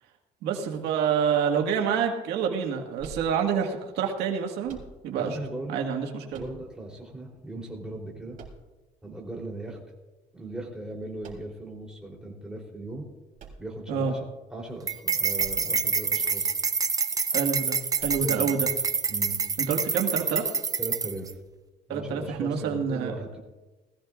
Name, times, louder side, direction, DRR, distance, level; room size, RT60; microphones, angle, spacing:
voice 1, 0.4-4.8 5.0-5.4 5.7-6.4 13.9-14.1 17.3-18.7 19.6-20.6 21.9-23.2, right 7 dB, 90° right, 2 dB, 1.8 m, -27 dB
sound 1, 3.0-3.8 4.6-5.3 6.3-7.0 8.3-9.1 11.2-11.8 13.3-14.2 15.3-15.9 16.2-16.3 18.0-18.6, right 5 dB, 50° right, 3.6 m, -46 dB
voice 2, 5.2-5.8 6.3-8.4 9.0-9.8 10.3-13.1 13.6-16.5 18.2-18.6 19.1-19.4 20.8-21.3 21.9-23.4, right 2 dB, 5° right, -1 dB, 3.5 m, -38 dB
sound 2, 14.9-21.3, right 5 dB, 20° right, 0.6 m, -27 dB
20.0 x 15.0 x 2.5 m, 1.1 s
cardioid pair, 110°, 17 cm